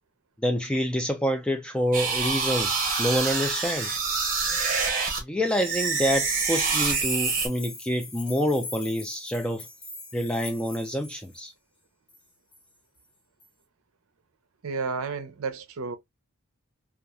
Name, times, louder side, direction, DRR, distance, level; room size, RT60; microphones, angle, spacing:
voice 1, 0.4-4.0 5.2-9.7 10.1-11.5, equal, 5° left, 0.3 m, -27 dB
sound 1, 1.9-5.2 5.5-7.5, right 4 dB, 40° right, 0.8 m, -26 dB
sound 2, 6.3-11.4 12.1-12.2 12.5-12.6 13.4-13.5, left 3 dB, 25° left, 1.2 m, -41 dB
voice 2, 14.6-16.0, right 4 dB, 80° right, 0.5 m, -31 dB
2.8 x 2.4 x 2.3 m
head